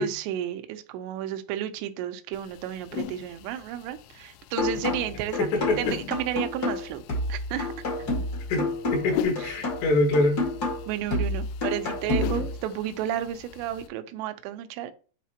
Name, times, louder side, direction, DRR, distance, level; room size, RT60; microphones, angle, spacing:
voice 1, 0.0-5.5 5.8-7.0 7.3-7.7 8.0-8.1 9.4-9.7 10.9-14.9, right 11 dB, 80° right, 8 dB, 2.7 m, -32 dB
sound 1, 2.3-13.9, left 9 dB, 90° left, 2.9 m, -40 dB
sound 2, 4.6-12.6, left 2 dB, 50° left, 1.1 m, -29 dB
voice 2, 5.4-5.9 8.5-10.4, left 2 dB, 75° left, 1 dB, 3.5 m, -24 dB
8.3 x 4.0 x 2.9 m, 0.38 s
omnidirectional pair, 5.1 m